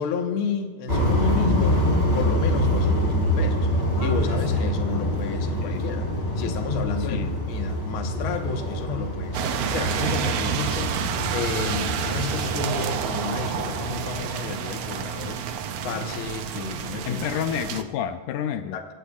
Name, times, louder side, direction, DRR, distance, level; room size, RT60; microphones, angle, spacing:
voice 1, 0.0-1.8 2.1-6.1 6.4-11.0 11.3-15.4 15.8-17.2 18.7-18.9, left 6 dB, 55° left, 4 dB, 1.7 m, -31 dB
sound 1, 0.9-14.2, left 1 dB, 20° left, 3.1 m, -26 dB
voice 2, 7.0-7.4 17.1-18.8, left 9 dB, 80° left, 9 dB, 2.2 m, -29 dB
sound 2, 9.3-17.8, right 8 dB, 75° right, 1.5 m, -29 dB
22.5 x 17.5 x 2.4 m, 1.3 s
omnidirectional pair, 3.7 m